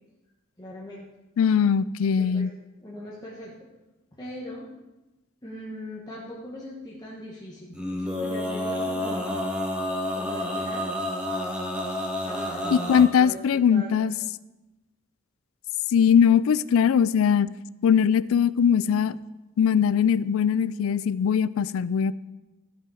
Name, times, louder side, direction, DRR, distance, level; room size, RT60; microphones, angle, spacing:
voice 1, 0.6-1.1 2.2-2.5 2.8-3.5 4.1-4.7 5.4-9.4 9.8-11.0 12.2-13.4 13.7-13.9, left 1 dB, 20° left, 1.2 m, -40 dB
voice 2, 1.4-2.5 12.7-14.1 15.9-17.5 17.8-19.2 19.6-22.1, left 7 dB, 80° left, 0.3 m, -21 dB
Male singing, 7.7-13.1, left 1 dB, 5° right, 1.4 m, -29 dB
13.5 x 6.0 x 4.8 m
head